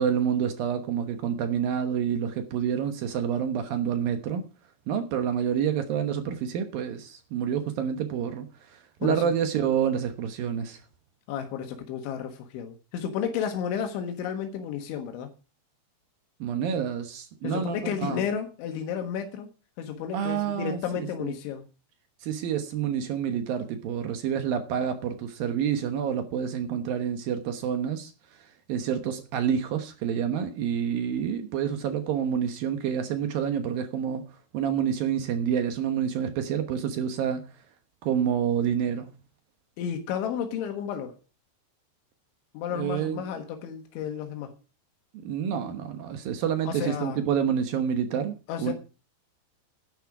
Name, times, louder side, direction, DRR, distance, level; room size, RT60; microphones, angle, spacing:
voice 1, 0.0-4.5 4.9-10.8 16.4-18.3 20.1-20.8 21.2-21.3 22.2-28.4 28.7-34.2 34.5-37.5 38.0-39.1 42.7-43.2 45.2-48.7, right 8 dB, 65° right, 2.5 m, -28 dB
voice 2, 9.0-9.3 11.3-15.3 17.4-19.5 19.8-21.7 39.8-41.1 42.5-44.5 46.7-47.2 48.5-48.7, left 8 dB, 90° left, 3.9 m, -32 dB
11.0 x 10.5 x 4.9 m
omnidirectional pair, 5.2 m